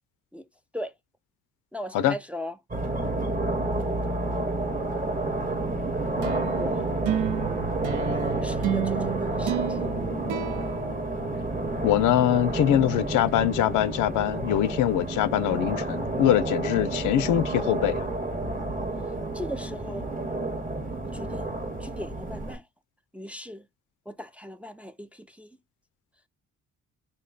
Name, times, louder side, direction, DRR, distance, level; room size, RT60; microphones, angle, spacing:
voice 1, 1.7-2.5 6.5-6.9 8.4-9.9 19.3-20.1 21.0-21.5 21.8-22.6 23.1-23.6 24.1-25.6, equal, 5° right, 0.3 m, -38 dB
sound 1, 2.7-22.6, right 2 dB, 30° right, 1.0 m, -30 dB
sound 2, 6.2-11.8, right 11 dB, 75° right, 0.5 m, -32 dB
voice 2, 11.8-18.1, left 12 dB, 80° left, 0.5 m, -23 dB
3.7 x 2.2 x 3.8 m
cardioid pair, 90°, 30 cm